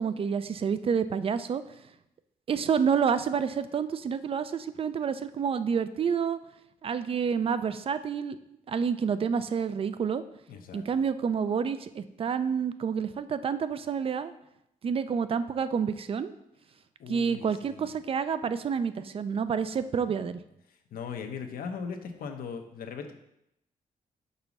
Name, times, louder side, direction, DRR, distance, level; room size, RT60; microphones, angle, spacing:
voice 1, 0.0-1.6 2.5-6.4 6.8-8.4 8.7-10.2 10.7-14.3 14.8-16.3 17.1-20.4, right 6 dB, 40° right, 13 dB, 0.4 m, -28 dB
voice 2, 10.5-10.9 17.0-17.9 20.9-23.1, left 6 dB, 85° left, 5 dB, 0.8 m, -39 dB
5.4 x 4.0 x 6.0 m, 0.82 s
wide cardioid pair, 130°, 15 cm